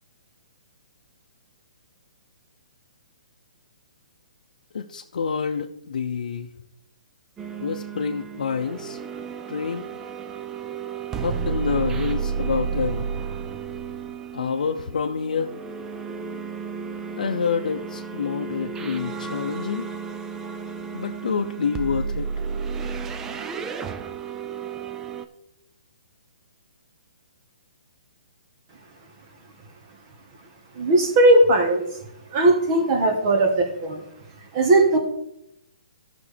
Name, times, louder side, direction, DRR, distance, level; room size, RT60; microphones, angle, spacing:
voice 1, 4.7-6.5 7.6-9.0 9.5-9.9 11.2-13.1 14.3-15.5 17.2-19.9 20.9-22.3, left 6 dB, 70° left, 2 dB, 0.6 m, -27 dB
sound 1, 7.4-25.3, right 6 dB, 10° right, 0.3 m, -32 dB
voice 2, 30.8-31.8 32.3-34.0 34.5-35.0, right 2 dB, 30° right, 4 dB, 1.4 m, -18 dB
16.0 x 5.9 x 3.4 m, 0.81 s
hypercardioid pair, 165°, 4 cm